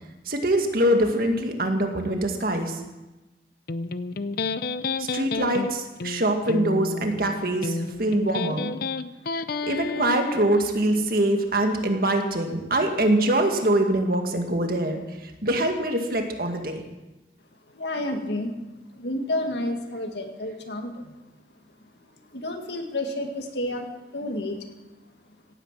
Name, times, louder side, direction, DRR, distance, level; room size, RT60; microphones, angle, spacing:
voice 1, 0.3-2.8 5.0-8.7 9.7-16.8, right 1 dB, 55° right, 4 dB, 2.0 m, -24 dB
Electric guitar, 3.7-10.7, left 3 dB, 55° left, 0.6 m, -31 dB
voice 2, 17.7-18.6 18.9-21.2 22.3-24.6, left 1 dB, 70° left, 4 dB, 2.1 m, -30 dB
17.5 x 9.7 x 7.6 m, 1.1 s
head